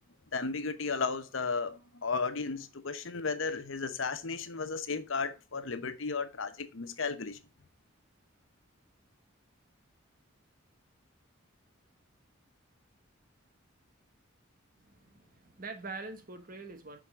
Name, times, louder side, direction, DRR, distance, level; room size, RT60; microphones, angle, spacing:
voice 1, 0.3-7.4, left 4 dB, 75° left, 0.9 m, -34 dB
voice 2, 14.8-17.0, right 3 dB, 40° right, 1.1 m, -44 dB
6.2 x 5.1 x 3.7 m
head